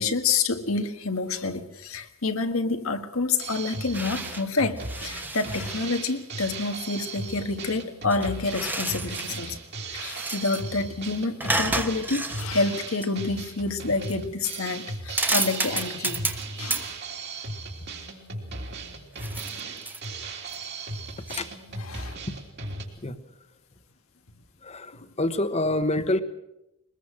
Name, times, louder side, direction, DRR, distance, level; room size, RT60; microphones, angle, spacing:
voice 1, 0.0-9.6 9.9-16.3 16.6-16.9 21.9-22.2, left 3 dB, 75° left, 7 dB, 1.6 m, -28 dB
Drum kit, 3.4-22.8, right 3 dB, 50° right, 3.4 m, -37 dB
sound 1, 3.9-4.5 4.8-5.8 8.0-9.5 9.9-10.6 11.4-12.5 13.0-13.1 14.0-14.2 14.5-14.7 15.1-16.5 16.7-16.9 19.2-20.1 20.5-20.6 21.3-21.4, right 2 dB, 10° right, 1.2 m, -30 dB
voice 2, 24.6-26.2, left 1 dB, 30° left, 11 dB, 1.2 m, -27 dB
22.5 x 20.5 x 6.4 m, 0.86 s
head